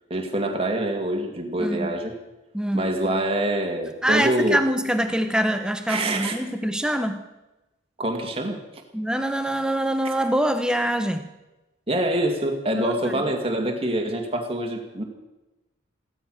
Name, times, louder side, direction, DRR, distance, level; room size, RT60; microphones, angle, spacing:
voice 1, 0.1-2.1 2.7-4.6 5.9-6.4 8.0-8.6 11.9-15.0, right 1 dB, 25° right, 2 dB, 2.2 m, -25 dB
voice 2, 1.6-2.0 2.5-2.9 4.0-7.2 8.9-11.3 12.8-13.2, right 1 dB, 5° right, 8 dB, 0.9 m, -24 dB
15.5 x 13.0 x 6.4 m, 1.0 s
head